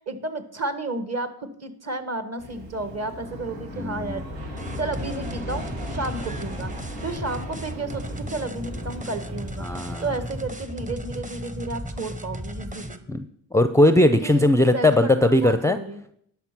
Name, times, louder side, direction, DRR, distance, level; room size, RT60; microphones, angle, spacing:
voice 1, 0.1-4.2 4.8-6.7 7.0-9.7 10.0-13.0 14.2-16.0, right 2 dB, 35° right, 10 dB, 1.6 m, -32 dB
Aircraft, 2.4-10.4, left 1 dB, 80° right, 3.3 m, -37 dB
voice 2, 3.7-4.2 9.6-10.0 13.1-13.3 13.5-15.8, left 1 dB, 5° left, 10 dB, 0.5 m, -19 dB
sound 1, 4.5-13.0, equal, 15° right, 1.0 m, -36 dB
sound 2, 4.6-9.8, right 2 dB, 60° right, 5.0 m, -45 dB
11.0 x 6.0 x 6.0 m, 0.68 s
supercardioid pair, 60°, 45 cm